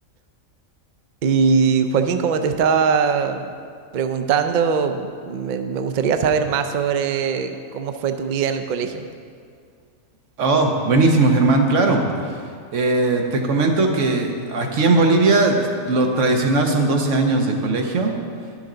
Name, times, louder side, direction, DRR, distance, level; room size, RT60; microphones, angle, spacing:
voice 1, 1.2-3.5 3.9-9.0, right 6 dB, 85° right, 7 dB, 0.4 m, -21 dB
voice 2, 10.4-12.0 12.7-15.6 15.9-18.1, right 2 dB, 65° right, 2 dB, 1.2 m, -18 dB
11.0 x 6.3 x 3.8 m, 2.2 s
omnidirectional pair, 1.4 m